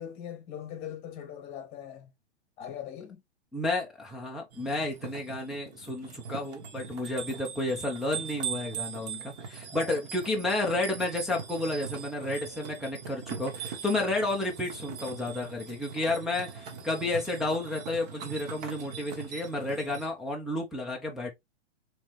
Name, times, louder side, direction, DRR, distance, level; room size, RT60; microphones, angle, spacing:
voice 1, 0.0-2.1 2.6-3.2 9.7-9.9, left 9 dB, 25° left, 1.0 m, -41 dB
voice 2, 3.5-21.3, left 2 dB, ahead, 0.3 m, -31 dB
sound 1, 4.5-20.1, right 6 dB, 40° right, 1.2 m, -41 dB
4.1 x 3.1 x 3.1 m
hypercardioid pair, 120°, 34 cm